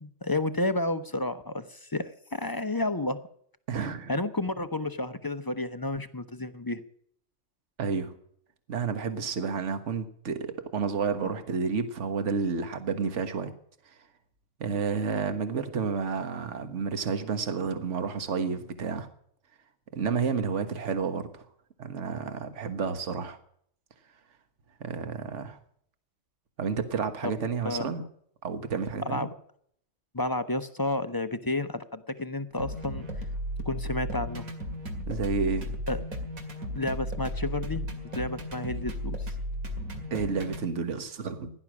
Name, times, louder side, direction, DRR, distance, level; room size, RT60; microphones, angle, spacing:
voice 1, 0.0-3.2 4.1-6.8 27.2-27.3 27.6-28.1 29.0-29.3 30.1-33.0 33.6-34.5 35.9-36.0 36.7-37.9 38.1-39.3, left 2 dB, 20° left, 11 dB, 0.6 m, -31 dB
voice 2, 3.7-4.1 7.8-8.1 8.7-13.5 14.6-19.1 19.9-21.4 21.8-23.4 24.8-25.6 26.6-28.0 28.4-29.3 35.1-35.7 40.1-41.5, right 5 dB, 55° right, 9 dB, 1.7 m, -30 dB
sound 1, 32.6-40.7, equal, 85° right, 2.8 m, -35 dB
16.5 x 11.0 x 6.2 m, 0.66 s
omnidirectional pair, 1.5 m